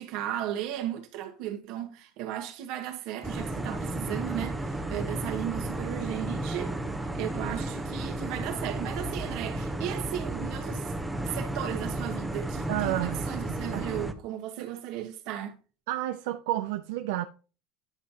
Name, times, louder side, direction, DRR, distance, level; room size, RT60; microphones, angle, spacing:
voice 1, 0.0-10.9 11.2-15.6, right 11 dB, 65° right, 1.6 m, -35 dB
sound 1, 3.2-14.1, right 1 dB, 5° right, 0.8 m, -33 dB
voice 2, 12.7-13.2 13.7-13.9 14.6-14.7 15.9-17.3, right 15 dB, 85° right, 0.5 m, -30 dB
9.9 x 5.5 x 3.0 m
cardioid pair, 140°, 0 cm